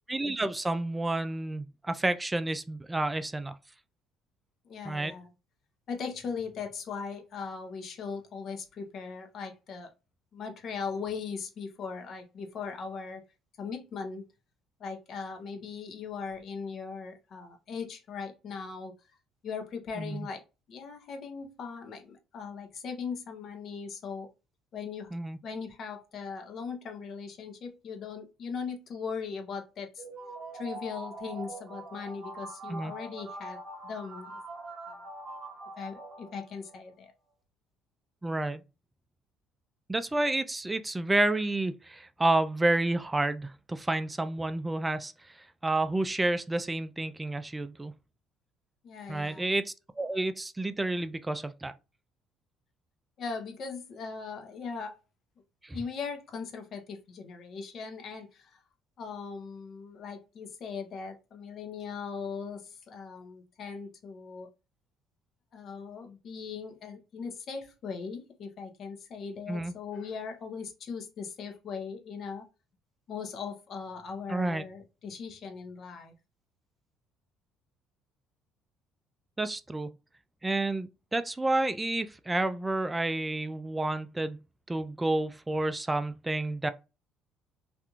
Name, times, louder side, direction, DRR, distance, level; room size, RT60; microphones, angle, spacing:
voice 1, 0.1-3.6 4.9-5.1 20.0-20.3 25.1-25.4 32.7-32.9 38.2-38.6 39.9-45.4 45.6-47.9 49.1-51.7 55.6-55.8 69.5-69.7 74.3-74.7 79.4-80.0 80.4-86.7, right 2 dB, 15° right, 0.3 m, -30 dB
voice 2, 4.6-5.3 5.9-9.9 10.3-13.2 13.6-14.2 14.8-18.9 19.4-20.4 20.7-24.3 24.7-25.1 25.4-30.0 30.5-34.4 34.9-35.1 35.8-37.1 48.8-49.5 53.2-55.0 55.7-58.6 59.0-64.5 65.5-72.5 73.1-76.1, left 5 dB, 55° left, 0.7 m, -39 dB
sound 1, 30.0-36.8, right 2 dB, 35° right, 1.2 m, -43 dB
2.9 x 2.5 x 2.3 m
supercardioid pair, 90°, 0 cm